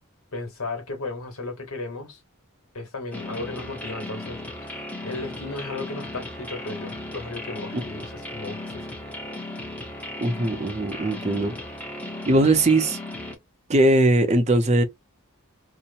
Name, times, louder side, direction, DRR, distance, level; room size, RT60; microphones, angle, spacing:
voice 1, 0.3-2.2 2.7-8.7, left 3 dB, 80° left, 1.3 m, -35 dB
sound 1, 3.1-13.4, left 1 dB, 5° left, 0.7 m, -36 dB
voice 2, 10.2-11.5 12.3-13.0 13.7-14.8, right 2 dB, 30° right, 0.6 m, -20 dB
2.8 x 2.1 x 2.5 m
head